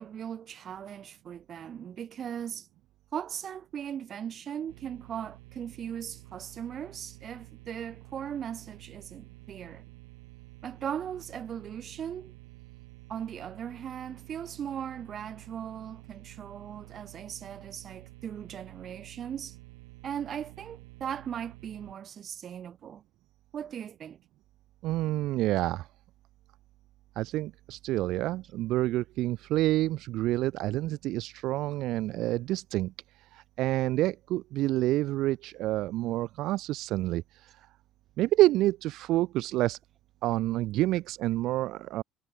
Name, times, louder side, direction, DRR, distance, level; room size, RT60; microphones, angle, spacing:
voice 1, 0.0-2.7 3.1-9.8 10.6-12.3 13.1-19.6 20.0-23.0 23.5-24.2, right 9 dB, 50° right, 2.8 m, -38 dB
sound 1, 4.7-21.9, right 26 dB, 85° right, 2.0 m, -50 dB
voice 2, 24.8-25.9 27.2-37.5 38.2-39.8 40.2-42.0, right 16 dB, 65° right, 0.3 m, -28 dB
hypercardioid pair, 70°, 0 cm